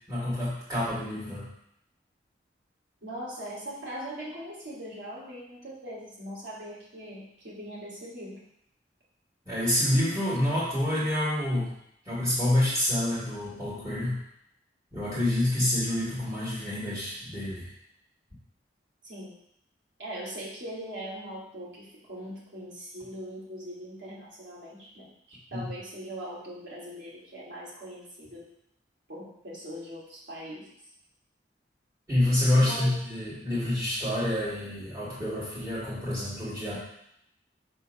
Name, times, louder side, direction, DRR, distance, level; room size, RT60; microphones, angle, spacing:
voice 1, 0.1-1.5 9.5-11.7 12.0-14.2 14.9-17.7 25.5-25.7 32.1-36.7, left 1 dB, 15° right, -12 dB, 2.1 m, -27 dB
voice 2, 3.0-8.4 19.0-19.3 20.0-28.4 29.1-30.7 32.5-33.0, right 1 dB, 90° right, -6 dB, 2.5 m, -41 dB
6.2 x 3.7 x 5.5 m, 0.75 s
head